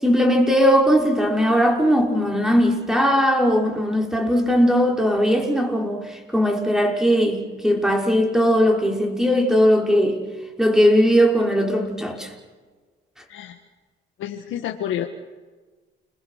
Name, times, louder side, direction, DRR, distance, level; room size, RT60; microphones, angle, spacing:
voice 1, 0.0-10.2 10.6-12.3, equal, 5° right, 5.4 m, -19 dB
voice 2, 14.2-15.1, left 10 dB, 85° left, 1.7 m, -29 dB
30.0 x 21.5 x 6.6 m
cardioid pair, 90°, 20 cm